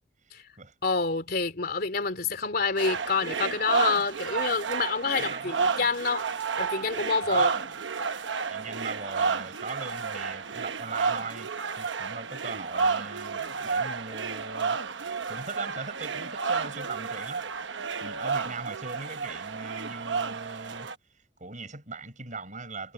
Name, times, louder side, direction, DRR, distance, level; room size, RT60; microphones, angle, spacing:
voice 1, 0.8-6.2 6.6-7.5, left 4 dB, 55° left, 3.3 m, -27 dB
sound 1, 2.8-20.9, right 5 dB, 85° right, 1.0 m, -31 dB
voice 2, 5.2-5.5 7.3-7.6 8.5-11.5 11.8-14.8 15.3-17.4 18.0-20.9 21.4-22.9, right 3 dB, 45° right, 7.1 m, -39 dB
head